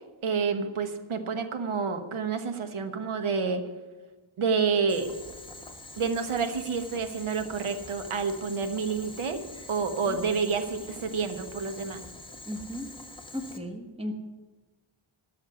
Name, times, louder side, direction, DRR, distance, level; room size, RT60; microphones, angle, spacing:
voice 1, 0.2-3.6 4.4-5.1 6.0-9.4 9.7-12.0, right 5 dB, 80° right, 8 dB, 1.2 m, -29 dB
Boiling, 4.9-13.6, left 2 dB, 10° left, 1.1 m, -45 dB
voice 2, 12.5-12.9 13.3-14.2, equal, 10° right, 5 dB, 1.3 m, -35 dB
13.5 x 6.5 x 9.5 m, 1.2 s
wide cardioid pair, 160°, 49 cm